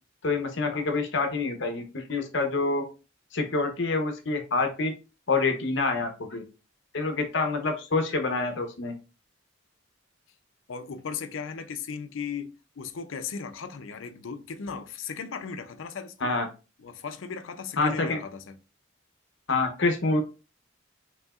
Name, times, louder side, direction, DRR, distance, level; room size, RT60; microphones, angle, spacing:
voice 1, 0.2-2.8 3.3-4.9 5.3-6.4 6.9-8.9 16.2-16.5 17.8-18.2 19.5-20.2, left 3 dB, 70° left, 0.9 m, -27 dB
voice 2, 10.7-16.3 16.8-18.6, left 6 dB, 90° left, 0.5 m, -37 dB
5.3 x 2.8 x 2.4 m
head